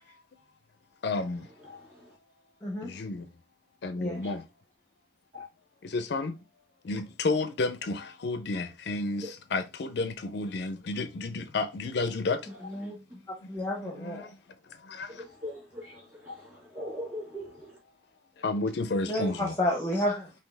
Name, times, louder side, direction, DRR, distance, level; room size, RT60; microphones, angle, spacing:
voice 1, 1.0-1.5 2.8-3.3 3.8-4.4 5.8-6.4 6.8-12.4 13.8-14.3 14.8-15.2 18.4-19.5, left 3 dB, 60° left, 0.4 m, -31 dB
voice 2, 1.6-2.1 4.1-4.4 5.3-5.5 9.2-9.3 12.8-12.9 15.1-17.8, left 1 dB, 15° right, 2.3 m, -41 dB
voice 3, 12.6-14.3 19.1-20.3, left 1 dB, 10° left, 0.7 m, -31 dB
5.5 x 2.6 x 3.3 m
head